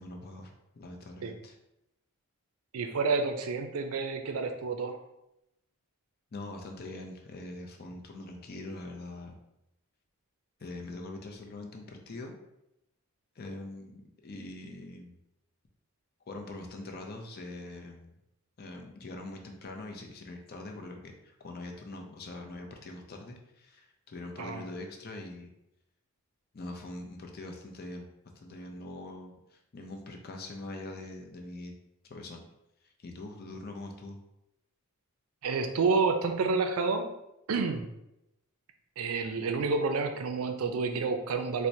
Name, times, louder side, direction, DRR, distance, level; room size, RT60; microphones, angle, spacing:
voice 1, 0.0-1.6 6.3-9.4 10.6-12.4 13.4-15.2 16.3-18.1 18.6-25.5 26.5-28.1 28.4-31.7 32.1-32.4 32.8-34.2, left 2 dB, 45° left, 2 dB, 0.5 m, -43 dB
voice 2, 2.7-5.0 24.4-24.6 35.4-37.1 37.5-37.9 39.0-41.7, right 4 dB, 75° right, 6 dB, 0.4 m, -29 dB
4.3 x 2.1 x 2.6 m, 0.87 s
head